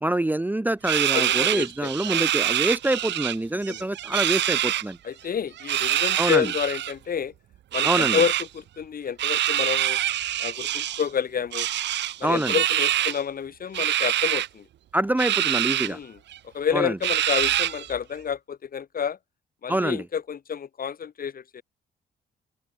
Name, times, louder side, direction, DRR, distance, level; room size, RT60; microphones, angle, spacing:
voice 1, 0.0-5.0 6.2-6.5 7.8-8.2 12.2-12.5 14.9-16.0 16.7-17.0 19.7-20.0, right 1 dB, 10° right, 0.9 m, -25 dB
sound 1, 0.8-3.4 3.6-4.8 5.6-6.9 7.7-8.5 9.2-11.1 11.5-13.2 13.7-14.5 15.2-15.9 16.3-16.4 17.0-17.9, right 12 dB, 80° right, 1.9 m, -25 dB
voice 2, 1.1-2.3 3.7-3.9 5.0-7.3 7.7-10.0 10.4-11.7 12.2-14.7 15.8-16.2 16.4-19.2 19.6-21.6, left 7 dB, 55° left, 6.4 m, -29 dB
open air
cardioid pair, 85°, 18 cm